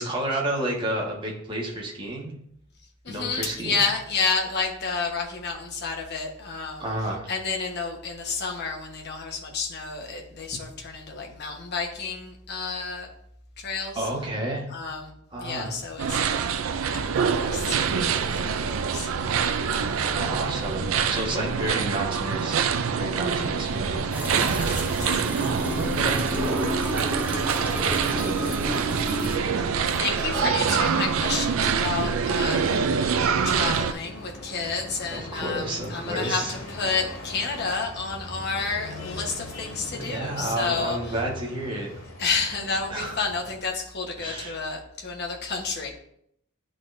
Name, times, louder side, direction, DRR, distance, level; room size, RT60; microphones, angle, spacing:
voice 1, 0.0-2.3 3.1-3.8 6.8-7.3 13.9-14.7 15.3-15.7 19.7-24.1 25.7-26.8 27.9-28.4 30.3-30.5 35.1-36.5 40.0-41.9 42.9-43.1 44.2-44.5, right 1 dB, 25° right, -2 dB, 1.4 m, -31 dB
voice 2, 3.0-6.9 7.3-13.1 13.6-14.0 14.7-15.1 15.4-16.4 16.9-19.1 23.2-23.6 24.5-25.2 29.8-32.8 33.4-41.2 42.2-45.9, left 4 dB, 55° left, 0 dB, 1.2 m, -30 dB
sound 1, 16.0-33.9, right 6 dB, 75° right, 0.4 m, -25 dB
sound 2, 23.6-43.6, left 1 dB, 85° left, 1.7 m, -42 dB
sound 3, 24.1-29.4, equal, 10° right, 0.6 m, -31 dB
10.5 x 3.8 x 2.6 m, 0.72 s
head